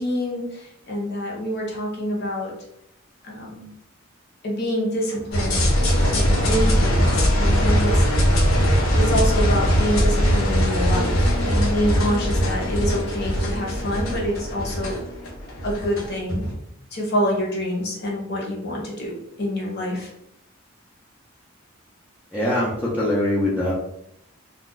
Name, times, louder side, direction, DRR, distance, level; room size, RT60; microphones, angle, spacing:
voice 1, 0.0-2.5 3.2-3.7 4.4-5.7 6.1-8.1 9.0-15.0 15.6-16.4 16.9-20.1, equal, 55° left, -2 dB, 0.9 m, -26 dB
sound 1, 5.3-16.5, equal, 80° left, 0.7 m, -20 dB
voice 2, 22.3-23.7, left 1 dB, 10° left, -7 dB, 0.6 m, -22 dB
2.4 x 2.3 x 3.7 m, 0.77 s
head